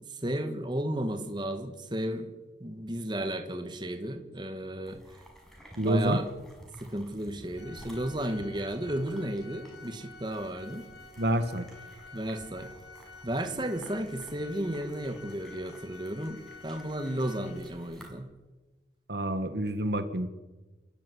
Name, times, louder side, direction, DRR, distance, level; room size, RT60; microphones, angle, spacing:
voice 1, 0.0-2.4 2.6-5.0 5.8-6.3 6.8-10.8 12.1-12.7 13.2-18.3, right 1 dB, 25° right, 6 dB, 2.1 m, -33 dB
sound 1, 4.9-18.1, equal, 5° left, 5.9 m, -53 dB
voice 2, 5.8-6.2 11.2-11.7 19.1-20.3, right 1 dB, 65° right, 9 dB, 1.7 m, -27 dB
Organ, 7.6-18.1, left 4 dB, 80° left, 3.2 m, -51 dB
28.0 x 14.0 x 9.9 m, 1.2 s
head